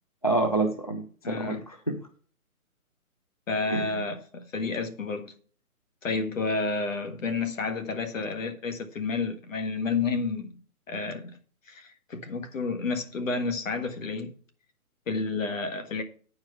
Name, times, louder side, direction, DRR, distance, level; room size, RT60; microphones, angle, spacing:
voice 1, 0.2-2.0 3.7-4.0, right 2 dB, 25° left, 0.4 m, -28 dB
voice 2, 1.2-1.6 3.5-5.3 6.0-10.5 10.9-11.4 11.7-14.3 15.1-16.0, left 4 dB, 60° left, 1.7 m, -30 dB
9.5 x 4.8 x 6.9 m
hypercardioid pair, 165°, 43 cm